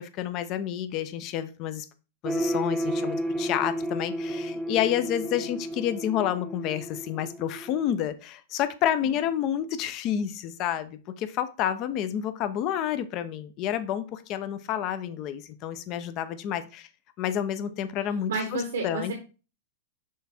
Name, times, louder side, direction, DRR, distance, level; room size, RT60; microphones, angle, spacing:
voice 1, 0.0-1.9 2.2-16.9 17.2-19.1, left 10 dB, 40° left, 0.7 m, -29 dB
sound 1, 2.2-8.1, right 1 dB, 5° right, 0.8 m, -32 dB
voice 2, 18.3-19.1, right 3 dB, 85° right, 1.2 m, -30 dB
6.4 x 3.5 x 4.3 m
hypercardioid pair, 130°, 0 cm